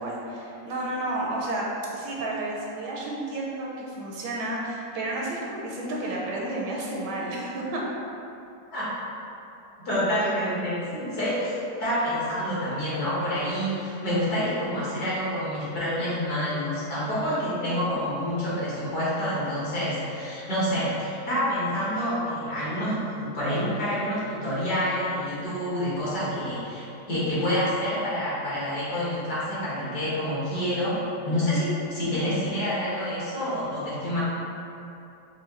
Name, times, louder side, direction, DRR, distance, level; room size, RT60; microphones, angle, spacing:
voice 1, 0.0-1.7 1.9-7.8 10.2-10.3 17.7-17.9, right 2 dB, 75° right, -3 dB, 1.2 m, -31 dB
voice 2, 9.8-34.2, equal, 60° left, -10 dB, 1.8 m, -28 dB
5.5 x 2.5 x 2.9 m, 2.7 s
omnidirectional pair, 1.9 m